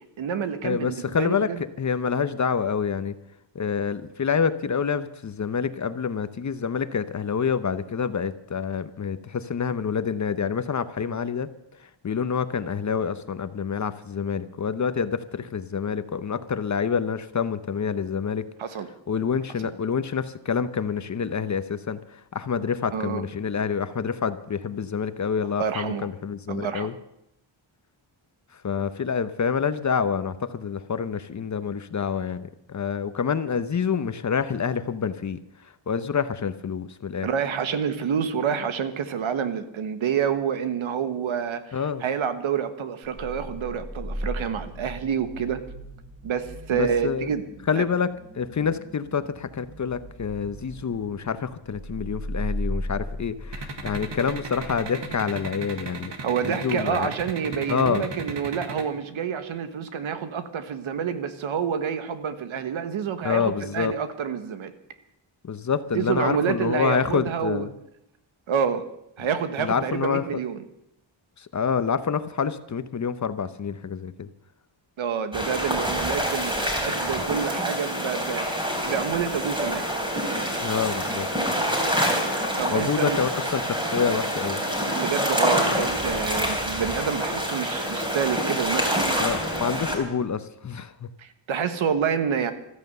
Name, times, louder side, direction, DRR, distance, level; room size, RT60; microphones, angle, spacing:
voice 1, 0.0-1.6 18.6-18.9 19.6-19.7 22.9-23.2 25.6-26.1 26.5-26.9 37.2-45.6 46.2-47.4 47.7-47.8 56.2-64.7 65.9-67.6 68.5-68.8 69.2-70.6 75.0-79.8 82.6-83.2 84.9-89.1 91.2-92.5, right 7 dB, 80° right, 10 dB, 1.5 m, -28 dB
voice 2, 0.6-1.5 1.8-3.1 3.5-11.5 12.0-18.4 19.1-26.9 28.5-35.4 35.9-37.3 41.7-42.0 46.7-47.3 47.7-48.1 48.3-56.1 56.4-57.1 57.7-58.1 63.2-63.9 65.4-67.7 69.6-70.2 71.4-74.3 80.6-81.3 82.7-84.6 89.2-91.1, left 6 dB, 35° left, 12 dB, 0.8 m, -27 dB
sound 1, 43.0-55.7, equal, 35° right, 7.0 m, -37 dB
sound 2, 53.5-58.8, right 4 dB, 60° right, 2.2 m, -35 dB
sound 3, 75.3-90.0, equal, 10° right, 3.6 m, -26 dB
15.0 x 13.5 x 6.7 m, 0.80 s
wide cardioid pair, 140°, 47 cm